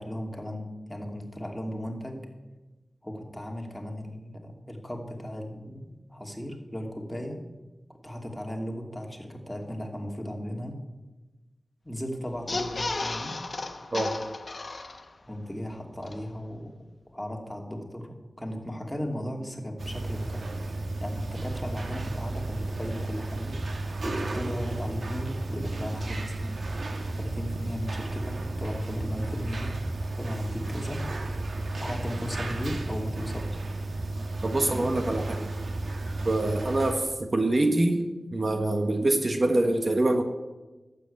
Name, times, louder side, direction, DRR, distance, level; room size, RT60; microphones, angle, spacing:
voice 1, 0.0-2.3 3.0-7.4 8.0-10.8 11.8-13.4 15.3-16.7 17.1-23.6 24.0-26.6 27.1-29.8 30.2-31.1 31.8-33.6 34.6-34.9, equal, 10° left, 1 dB, 2.7 m, -36 dB
sound 1, 12.3-15.3 15.7-15.8 16.0-16.1, left 3 dB, 55° left, 1.2 m, -33 dB
sound 2, 19.8-36.9, right 2 dB, 75° right, 1.5 m, -33 dB
voice 2, 34.4-35.5 36.2-40.2, right 2 dB, 50° right, 5 dB, 1.4 m, -25 dB
12.5 x 8.4 x 8.6 m, 1.2 s
cardioid pair, 50°, 0 cm